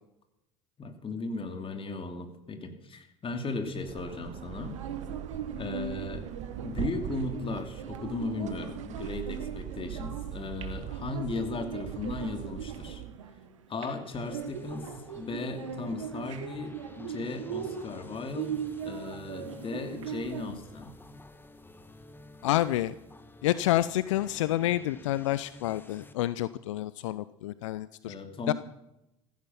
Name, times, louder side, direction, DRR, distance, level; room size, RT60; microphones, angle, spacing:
voice 1, 0.8-4.8 5.6-6.3 6.6-13.0 13.7-18.5 18.8-21.0 28.1-28.5, left 3 dB, 35° left, 7 dB, 2.8 m, -36 dB
sound 1, 3.7-13.2, right 14 dB, 50° right, 0.5 m, -41 dB
sound 2, 4.5-20.6, right 7 dB, 90° right, 1.6 m, -40 dB
sound 3, 14.1-26.1, left 2 dB, 15° left, 1.6 m, -51 dB
voice 2, 22.4-22.9 23.4-28.1 28.5-28.6, left 14 dB, 80° left, 16 dB, 0.5 m, -28 dB
15.0 x 14.5 x 5.8 m, 0.90 s
hypercardioid pair, 70°, 16 cm